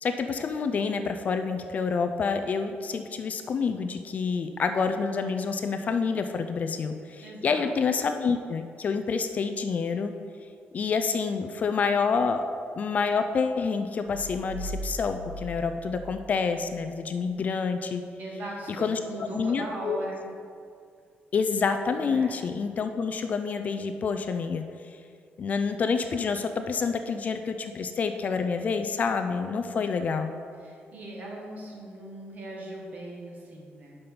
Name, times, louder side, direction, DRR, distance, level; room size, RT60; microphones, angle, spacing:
voice 1, 0.0-10.1 10.7-12.4 12.8-18.0 18.8-20.0 21.3-24.6 25.4-30.3, left 5 dB, 40° left, 8 dB, 0.4 m, -28 dB
voice 2, 7.2-7.7 18.2-20.3 22.0-22.3 29.7-29.8 30.6-34.0, right 1 dB, 45° right, -2 dB, 1.6 m, -39 dB
sound 1, 14.1-16.8, right 1 dB, 75° right, 0.5 m, -39 dB
5.7 x 5.3 x 6.8 m, 2.2 s
wide cardioid pair, 165°, 4 cm